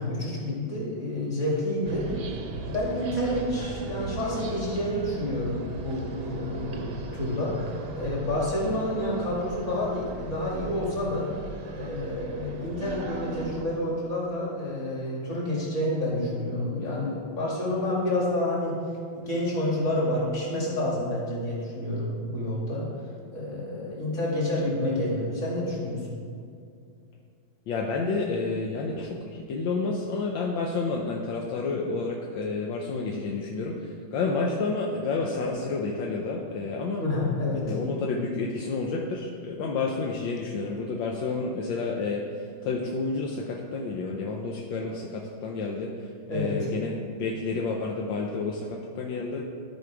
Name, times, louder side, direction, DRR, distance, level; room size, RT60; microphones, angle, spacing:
voice 1, 0.0-2.1 2.6-7.5 8.0-11.3 11.7-18.8 19.1-22.8 23.3-26.0 37.0-37.6 46.3-46.7, left 1 dB, 35° left, -5 dB, 2.5 m, -29 dB
sound 1, 1.8-13.6, right 3 dB, 65° right, 1.3 m, -38 dB
voice 2, 27.7-37.0 37.7-49.4, left 3 dB, 75° left, -1 dB, 1.4 m, -30 dB
13.5 x 4.6 x 4.7 m, 2.3 s
omnidirectional pair, 2.2 m